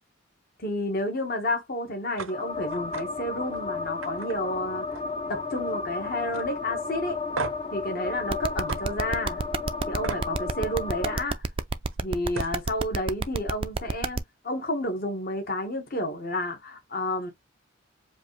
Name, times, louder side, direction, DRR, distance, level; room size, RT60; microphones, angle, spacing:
voice 1, 0.6-5.0 5.3-7.2 7.7-9.4 9.9-11.4 12.0-17.3, left 1 dB, 45° left, 1.3 m, -31 dB
sound 1, 2.2-2.3 2.7-3.0 3.4-3.6 4.0-5.2 5.5-5.9 6.3-6.4 7.4-7.7 8.7-8.8 10.0-10.3 11.9-12.0 12.3-12.6, right 4 dB, 90° right, 0.7 m, -36 dB
sound 2, 2.3-11.2, left 4 dB, 25° left, 0.6 m, -33 dB
sound 3, 8.3-14.2, right 4 dB, 25° right, 0.3 m, -28 dB
5.1 x 2.5 x 3.2 m
head